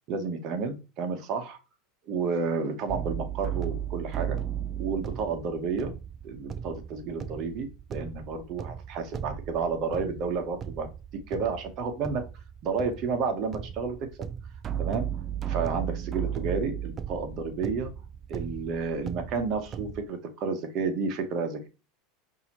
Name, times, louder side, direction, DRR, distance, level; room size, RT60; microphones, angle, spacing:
voice 1, 0.1-1.6 2.1-4.4 4.8-5.9 6.2-10.9 11.3-12.2 12.6-14.0 14.8-15.1 15.5-17.9 18.3-21.7, right 5 dB, 50° right, 6 dB, 1.0 m, -31 dB
sound 1, 2.9-20.1, right 9 dB, 35° right, 0.3 m, -36 dB
5.5 x 2.8 x 3.0 m, 0.30 s
hypercardioid pair, 100°, 0 cm